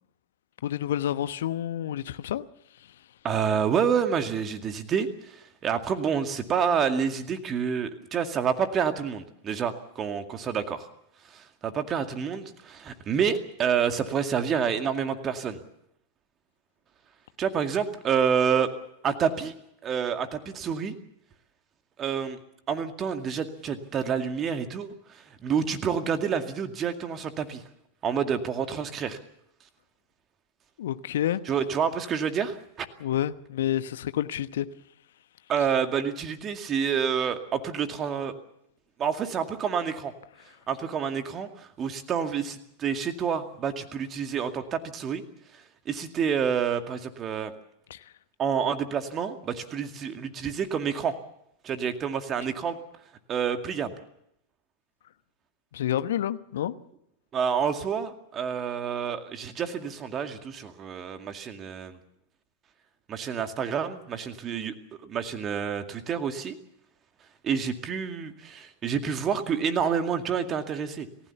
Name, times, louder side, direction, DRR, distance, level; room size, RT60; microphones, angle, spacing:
voice 1, 0.6-2.5 30.8-31.4 33.0-34.7 47.9-48.0 55.7-56.7, left 11 dB, 60° left, 1.1 m, -29 dB
voice 2, 3.2-10.9 11.3-15.6 17.4-18.7 19.0-19.5 19.8-21.0 22.0-22.4 22.7-27.6 28.0-29.2 31.5-32.9 35.5-38.3 39.0-40.1 40.7-45.2 45.9-47.5 48.4-51.1 51.6-52.8 53.3-53.9 57.3-62.0 63.1-64.7 65.0-66.6 67.4-71.1, right 7 dB, 25° right, 2.2 m, -28 dB
29.0 x 15.5 x 7.1 m
figure-of-eight pair, 90°, 0 cm